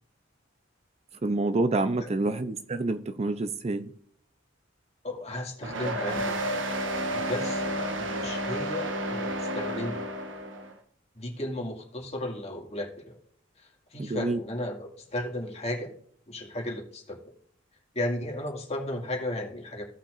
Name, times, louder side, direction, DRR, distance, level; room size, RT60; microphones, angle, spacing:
voice 1, 1.2-3.9 14.0-14.4, right 2 dB, 35° right, 0.5 m, -27 dB
voice 2, 5.0-6.4 7.1-7.7 8.0-10.1 11.2-13.2 13.6-15.9 16.3-17.2 17.9-19.9, left 1 dB, 35° left, 2.2 m, -34 dB
sound 1, 5.6-10.7, right 1 dB, 75° right, 1.3 m, -31 dB
16.0 x 5.8 x 2.5 m
head